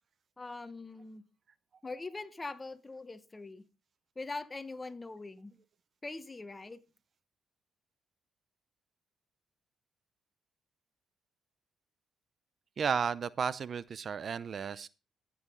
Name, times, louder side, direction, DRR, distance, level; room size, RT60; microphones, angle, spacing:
voice 1, 0.4-1.2 1.8-3.6 4.2-5.5 6.0-6.8, left 3 dB, 20° left, 1.0 m, -42 dB
voice 2, 12.8-14.9, right 6 dB, 50° right, 0.5 m, -33 dB
14.0 x 8.6 x 3.8 m
cardioid pair, 90°, 0 cm